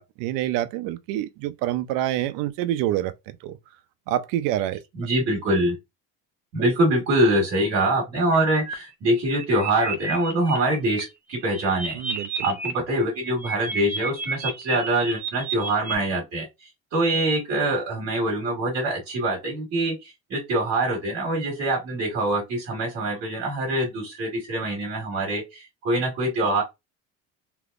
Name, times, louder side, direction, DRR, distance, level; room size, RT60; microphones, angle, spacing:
voice 1, 0.0-3.1 3.4-3.6 4.1-4.8 11.9-12.3, right 13 dB, 75° right, 0.6 m, -26 dB
voice 2, 5.0-5.8 6.5-12.0 12.4-16.5 16.9-26.6, right 1 dB, 55° right, 1.6 m, -24 dB
sound 1, 8.3-8.7 9.1-11.0 11.3-12.7 13.0-16.0, right 4 dB, 5° right, 0.5 m, -32 dB
3.4 x 3.0 x 2.4 m
cardioid pair, 165°, 33 cm